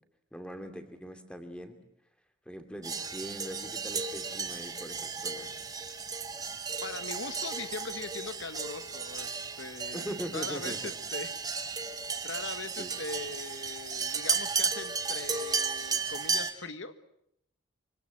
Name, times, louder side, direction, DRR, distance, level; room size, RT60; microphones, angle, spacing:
voice 1, 0.3-1.8 2.4-5.5 9.9-10.9 12.8-12.9, equal, 5° left, 6 dB, 2.8 m, -41 dB
sound 1, 2.8-16.5, right 5 dB, 20° right, 1.6 m, -34 dB
voice 2, 6.8-11.3 12.2-16.9, left 3 dB, 75° left, 11 dB, 1.5 m, -41 dB
26.0 x 25.5 x 7.8 m, 0.74 s
head